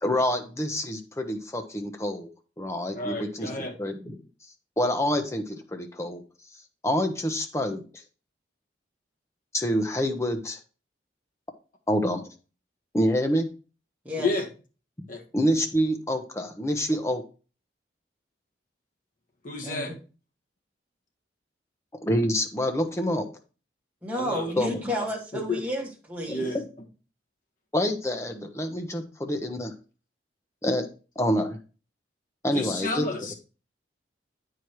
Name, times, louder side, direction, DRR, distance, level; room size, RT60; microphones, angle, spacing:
voice 1, 0.0-2.3 2.6-4.2 4.8-6.2 6.8-8.0 9.5-10.6 11.9-12.2 12.9-13.5 15.3-17.2 22.0-23.3 24.6-24.8 26.5-26.7 27.7-29.7 30.6-30.9 31.2-31.6 32.4-33.1, equal, 15° left, 5 dB, 0.9 m, -27 dB
voice 2, 2.9-3.7 14.2-14.5 15.1-15.2 19.4-19.9 24.1-25.0 25.5-25.6 26.3-26.6 32.5-33.3, left 3 dB, 45° left, 2 dB, 1.5 m, -31 dB
voice 3, 19.6-19.9 24.0-26.5, equal, 10° right, -2 dB, 2.0 m, -31 dB
8.8 x 4.8 x 4.5 m, 0.35 s
head